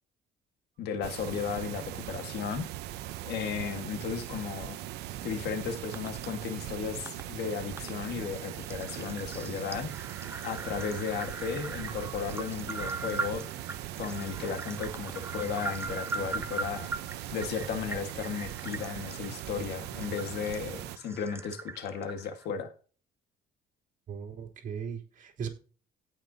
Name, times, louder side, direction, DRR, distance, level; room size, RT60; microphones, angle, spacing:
voice 1, 0.8-2.7 3.2-4.8 5.2-9.9 10.4-13.5 14.0-16.9 17.3-22.7, left 6 dB, 75° left, 1.7 m, -35 dB
sound 1, 1.0-21.0, right 13 dB, 80° right, 0.8 m, -40 dB
sound 2, 5.9-6.1 7.1-7.2 7.8-7.9 8.3-22.5, right 3 dB, 15° right, 0.9 m, -41 dB
voice 2, 24.1-25.5, right 7 dB, 50° right, 3.4 m, -38 dB
17.0 x 5.8 x 2.8 m
cardioid pair, 110°, 17 cm